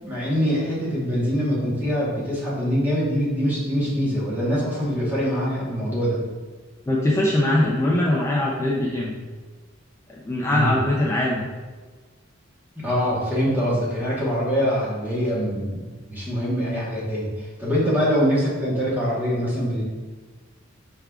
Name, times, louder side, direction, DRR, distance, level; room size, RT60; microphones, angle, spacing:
voice 1, 0.0-6.2 10.5-10.7 12.8-15.8 16.1-19.8, equal, 10° right, -8 dB, 1.1 m, -24 dB
voice 2, 6.9-9.1 10.2-11.4, left 1 dB, 15° left, -4 dB, 0.3 m, -21 dB
4.5 x 3.5 x 2.3 m, 1.3 s
head